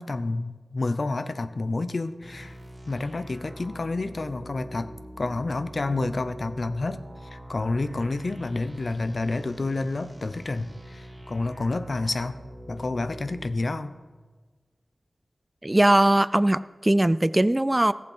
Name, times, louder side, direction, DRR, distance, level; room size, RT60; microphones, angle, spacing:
voice 1, 0.0-2.6 2.9-4.9 5.2-12.4 12.7-13.9, left 2 dB, 60° left, 12 dB, 0.6 m, -29 dB
sound 1, 2.2-13.5, equal, 40° right, 2.0 m, -44 dB
voice 2, 15.6-17.9, right 1 dB, 20° right, 16 dB, 0.3 m, -20 dB
14.5 x 7.5 x 5.5 m, 1.4 s
cardioid pair, 45°, 0 cm